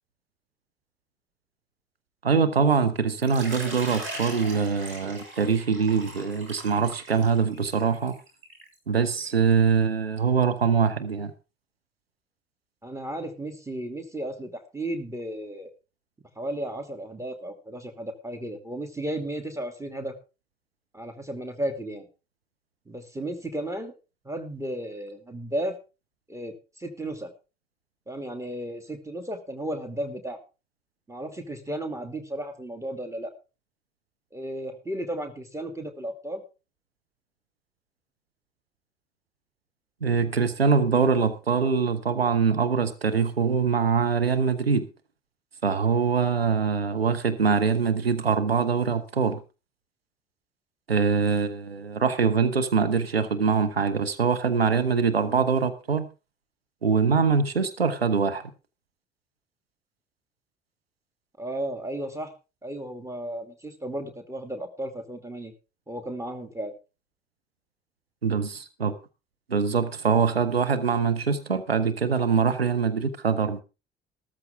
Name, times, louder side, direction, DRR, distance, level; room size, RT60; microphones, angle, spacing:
voice 1, 2.2-8.1 8.9-11.3 40.0-44.9 45.6-49.4 50.9-56.1 56.8-58.4 68.2-68.9 69.5-73.6, right 5 dB, 85° right, 0.8 m, -23 dB
Water / Liquid, 3.2-8.7, right 2 dB, 40° right, 6.5 m, -40 dB
voice 2, 12.8-15.7 16.4-20.1 20.9-22.1 22.9-23.9 24.2-25.7 26.3-27.3 28.1-30.4 31.1-33.3 34.3-36.4 61.4-62.3 62.6-65.5 65.9-66.7, right 1 dB, 10° right, 2.6 m, -34 dB
13.5 x 13.5 x 3.6 m
figure-of-eight pair, 50°, 29 cm